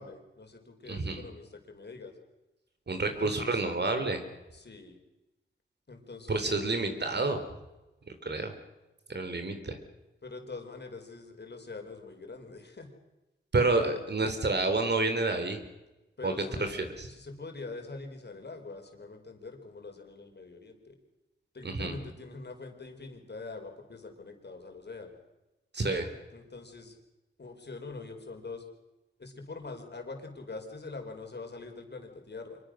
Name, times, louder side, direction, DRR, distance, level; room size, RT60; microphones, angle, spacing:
voice 1, 0.0-2.1 3.0-3.6 4.5-5.0 5.9-6.6 10.2-12.9 13.6-13.9 16.2-16.7 17.1-21.0 21.5-25.2 26.3-27.0 27.4-28.6 29.2-32.6, left 3 dB, 55° left, 4 dB, 4.8 m, -44 dB
voice 2, 0.9-1.2 2.9-4.2 6.3-7.4 8.2-8.5 9.1-9.8 13.5-15.6 16.2-17.1 21.6-21.9 25.7-26.1, right 3 dB, 55° right, 7 dB, 3.8 m, -29 dB
25.5 x 22.0 x 6.5 m, 1.0 s
cardioid pair, 60°, 21 cm